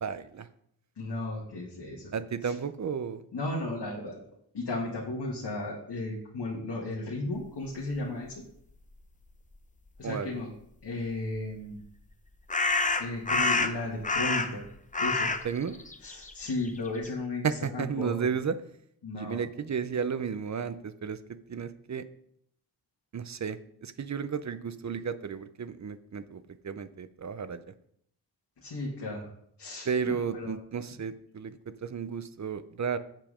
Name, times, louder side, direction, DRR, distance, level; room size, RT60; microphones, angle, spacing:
voice 1, 0.0-0.5 2.1-3.2 10.0-10.4 15.4-15.8 17.4-18.6 19.1-21.2 21.5-22.0 23.1-27.7 29.9-33.0, right 6 dB, 45° right, 13 dB, 0.6 m, -33 dB
voice 2, 1.0-2.1 2.4-2.5 3.3-4.2 4.5-8.4 10.0-10.5 10.8-11.8 13.0-14.6 15.0-15.3 16.0-18.1 19.0-19.4 28.6-29.3 29.6-30.5, left 2 dB, 80° left, -3 dB, 1.8 m, -35 dB
sound 1, 11.4-11.5 12.5-14.7 14.9-17.1, left 3 dB, 20° left, 0.6 m, -28 dB
7.5 x 7.4 x 5.0 m, 0.70 s
wide cardioid pair, 130°, 40 cm